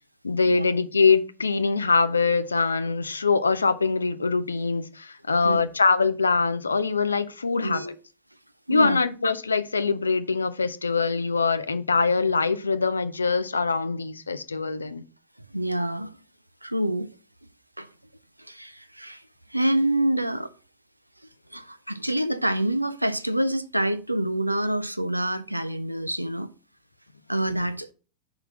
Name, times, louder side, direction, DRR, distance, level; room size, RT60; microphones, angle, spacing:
voice 1, 0.2-7.8 8.7-15.0, left 4 dB, 75° left, 0.5 m, -23 dB
voice 2, 7.6-8.0 8.7-9.0 15.5-16.2 16.6-17.1 17.8-17.9 18.4-19.2 19.5-20.5 21.5-26.5 27.3-27.9, right 1 dB, 90° right, 0.5 m, -27 dB
5.6 x 3.9 x 6.0 m
figure-of-eight pair, 90°, 0 cm